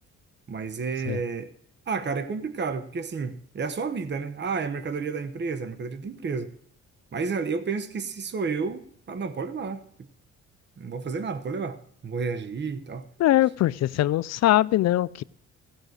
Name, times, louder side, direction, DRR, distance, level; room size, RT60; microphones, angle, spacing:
voice 1, 0.5-1.5 1.9-6.5 7.1-9.8 10.8-11.8 12.0-13.1, right 5 dB, 35° right, 1.0 m, -31 dB
voice 2, 13.2-15.2, left 14 dB, 60° left, 0.4 m, -22 dB
15.5 x 6.1 x 6.4 m
cardioid pair, 90°, 30 cm